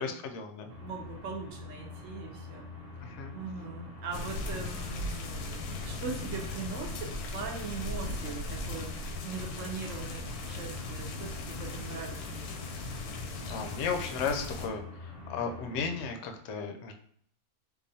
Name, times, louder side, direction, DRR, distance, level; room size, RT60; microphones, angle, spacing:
voice 1, 0.0-0.7 3.0-3.3 13.5-16.9, left 5 dB, 70° left, 5 dB, 0.7 m, -35 dB
sound 1, 0.7-16.1, left 3 dB, 35° right, 0.9 m, -45 dB
voice 2, 0.8-2.7 3.3-12.2, right 5 dB, 65° right, 1 dB, 0.9 m, -41 dB
sound 2, 4.1-14.7, left 2 dB, 90° left, 1.1 m, -38 dB
4.7 x 2.4 x 2.7 m, 0.64 s
omnidirectional pair, 1.6 m